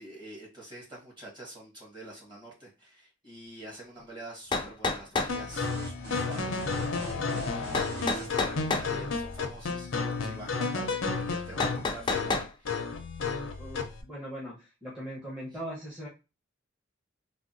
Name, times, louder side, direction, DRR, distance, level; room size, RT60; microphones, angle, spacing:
voice 1, 0.0-12.8 15.5-15.6, right 1 dB, 25° right, -3 dB, 1.3 m, -47 dB
sound 1, 4.0-4.1 4.5-5.4 7.7-8.9 11.6-12.5, left 3 dB, 25° left, 0.3 m, -29 dB
sound 2, 5.3-14.0, left 4 dB, 80° left, 0.5 m, -32 dB
sound 3, 5.5-8.3, right 2 dB, 40° right, 1.4 m, -41 dB
voice 2, 13.6-16.1, equal, 5° right, -7 dB, 0.7 m, -40 dB
3.5 x 2.2 x 2.5 m, 0.29 s
head